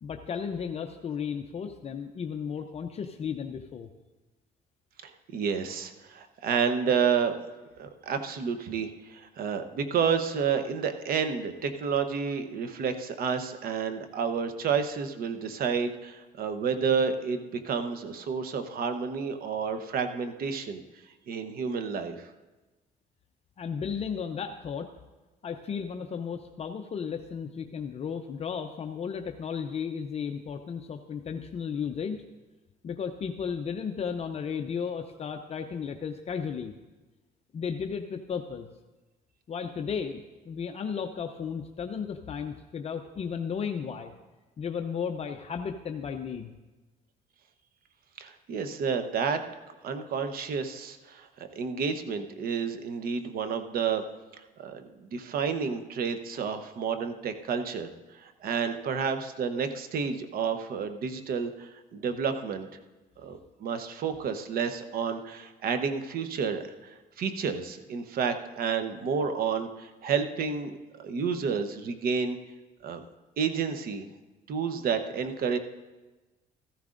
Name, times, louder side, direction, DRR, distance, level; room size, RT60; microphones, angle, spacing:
voice 1, 0.0-3.9 23.6-24.9 25.4-32.2 32.8-36.7 37.5-38.7 39.5-44.1 44.6-46.5, left 6 dB, 40° left, 5 dB, 0.6 m, -34 dB
voice 2, 5.0-7.3 7.8-20.8 21.3-22.3 48.2-49.4 49.8-54.0 54.4-62.7 63.2-72.4 72.8-73.0 73.4-74.1 74.5-75.6, right 6 dB, 60° right, 8 dB, 0.9 m, -30 dB
14.0 x 13.5 x 2.5 m, 1.2 s
cardioid pair, 110°, 17 cm